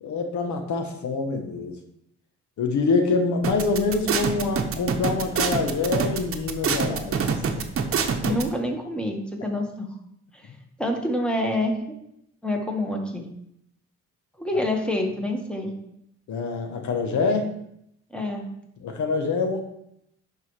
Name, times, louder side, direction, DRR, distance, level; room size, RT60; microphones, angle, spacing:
voice 1, 0.0-1.7 2.6-7.6 16.3-17.5 18.8-19.6, left 4 dB, 70° left, 5 dB, 1.1 m, -25 dB
sound 1, 3.4-8.4, right 6 dB, 50° right, 0.9 m, -25 dB
voice 2, 8.2-9.9 10.3-10.5 10.8-11.9 12.4-13.2 14.4-15.7 18.1-18.5, left 1 dB, 5° left, 1 dB, 1.5 m, -27 dB
11.0 x 4.8 x 3.3 m, 0.76 s
cardioid pair, 90°, 30 cm